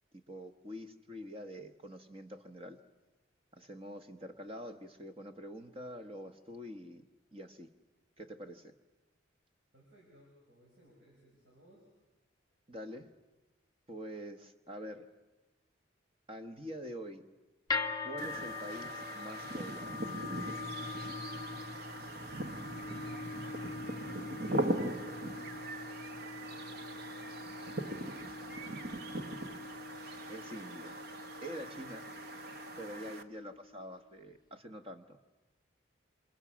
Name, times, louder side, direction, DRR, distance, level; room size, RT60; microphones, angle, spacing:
voice 1, 0.1-2.8 3.5-7.7 8.2-8.7 12.7-13.1 13.9-15.1 16.3-17.2 18.0-20.0 30.3-31.0 31.4-32.0 32.8-35.2, equal, 30° right, 7 dB, 1.3 m, -46 dB
voice 2, 9.7-11.9 22.0-23.8 24.8-27.6, equal, 85° right, -3 dB, 6.4 m, -63 dB
sound 1, 17.7-33.9, left 4 dB, 20° left, 0.9 m, -43 dB
sound 2, 18.2-33.2, right 1 dB, 50° right, 1.1 m, -40 dB
27.5 x 27.5 x 6.3 m, 1.1 s
head